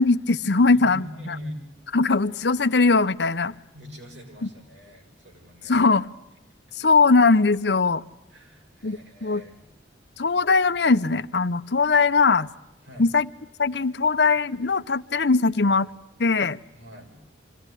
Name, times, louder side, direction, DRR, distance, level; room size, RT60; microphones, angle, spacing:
voice 1, 0.0-1.4 1.9-3.5 4.4-4.5 5.6-6.1 6.8-8.0 8.8-9.4 10.2-12.5 13.0-13.3 13.6-15.9 16.2-16.6, left 4 dB, 65° left, 12 dB, 0.8 m, -20 dB
voice 2, 0.6-1.6 3.7-5.8 8.3-9.6 12.8-13.1 16.7-17.1, left 1 dB, 80° right, 1 dB, 6.5 m, -42 dB
26.0 x 17.0 x 9.8 m, 0.92 s
head